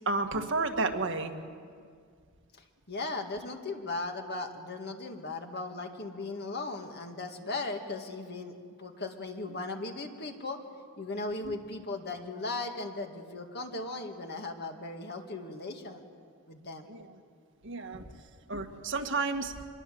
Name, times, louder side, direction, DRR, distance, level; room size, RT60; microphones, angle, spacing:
voice 1, 0.1-1.3 11.4-11.5 16.9-17.0 17.6-18.0 18.5-19.5, right 3 dB, 60° right, 4 dB, 1.7 m, -31 dB
voice 2, 2.9-8.5 8.8-10.6 11.0-16.0 16.5-16.9, left 3 dB, 50° left, 4 dB, 2.1 m, -37 dB
25.0 x 22.0 x 7.8 m, 2.1 s
head